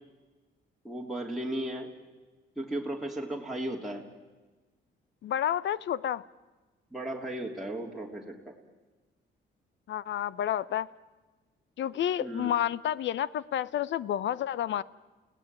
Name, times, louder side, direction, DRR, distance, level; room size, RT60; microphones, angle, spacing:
voice 1, 0.8-1.9 2.6-4.0 6.9-8.5 12.2-12.5, right 1 dB, ahead, -2 dB, 3.3 m, -35 dB
voice 2, 5.2-6.2 9.9-10.9 11.8-14.8, left 10 dB, 65° left, 20 dB, 0.8 m, -30 dB
29.5 x 17.5 x 9.0 m, 1.3 s
cardioid pair, 90°, 20 cm